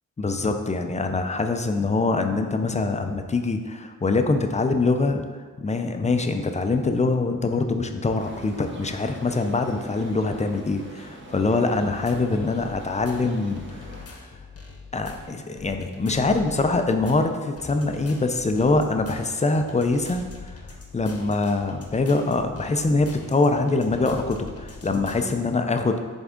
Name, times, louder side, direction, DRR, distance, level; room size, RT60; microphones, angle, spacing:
voice 1, 0.2-5.2 5.6-13.6 14.9-20.5 20.9-26.0, left 3 dB, 20° left, 6 dB, 0.4 m, -24 dB
sound 1, 8.2-14.1, right 1 dB, 35° right, 0.8 m, -43 dB
sound 2, 11.8-25.4, left 4 dB, 45° left, 0.8 m, -43 dB
7.7 x 3.5 x 3.6 m, 1.5 s
wide cardioid pair, 155°, 33 cm